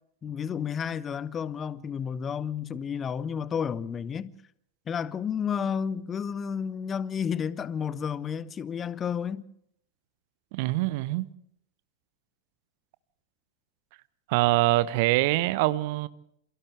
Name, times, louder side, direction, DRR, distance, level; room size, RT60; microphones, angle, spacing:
voice 1, 0.2-4.3 4.9-9.4, left 7 dB, 25° left, 0.8 m, -31 dB
voice 2, 10.5-11.3 14.3-16.1, right 18 dB, 50° right, 0.9 m, -24 dB
28.5 x 28.0 x 3.4 m
figure-of-eight pair, 90°, 0 cm